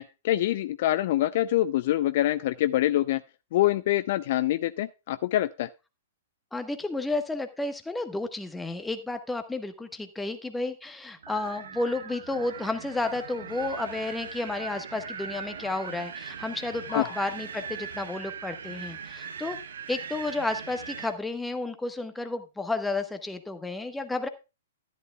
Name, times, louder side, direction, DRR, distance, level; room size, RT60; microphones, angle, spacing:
voice 1, 0.0-3.2 3.5-5.7 16.9-17.1, left 14 dB, 45° left, 14 dB, 0.4 m, -25 dB
voice 2, 6.5-19.6 19.9-24.3, left 2 dB, 5° left, 8 dB, 1.2 m, -32 dB
Wind, 11.2-21.2, right 6 dB, 60° right, 1.1 m, -40 dB
13.5 x 10.5 x 2.3 m, 0.28 s
figure-of-eight pair, 110°, 0 cm